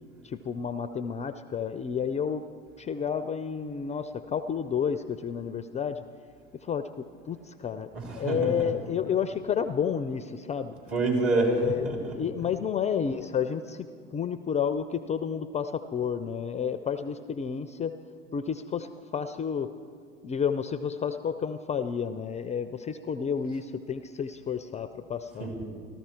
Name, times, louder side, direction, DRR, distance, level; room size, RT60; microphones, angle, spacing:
voice 1, 0.2-2.4 2.8-6.0 6.5-10.7 11.3-13.9 14.1-17.9 18.3-19.7 20.2-25.5, left 7 dB, 25° left, 11 dB, 0.4 m, -31 dB
voice 2, 7.9-8.7 10.9-12.1 25.4-25.6, right 3 dB, 45° right, 0 dB, 3.4 m, -27 dB
14.0 x 13.5 x 4.5 m, 2.3 s
hypercardioid pair, 75°, 30 cm